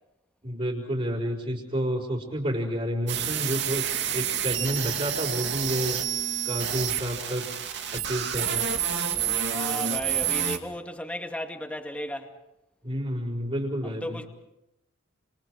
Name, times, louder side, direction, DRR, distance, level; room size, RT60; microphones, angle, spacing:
voice 1, 0.4-6.0 6.4-7.5 7.9-8.7 12.8-14.2, equal, 35° right, -5 dB, 5.1 m, -30 dB
sound 1, 3.1-10.6, right 9 dB, 65° right, 2.7 m, -29 dB
voice 2, 9.5-12.3 13.8-14.3, left 1 dB, 5° left, 4 dB, 2.2 m, -35 dB
30.0 x 28.5 x 4.9 m, 0.88 s
head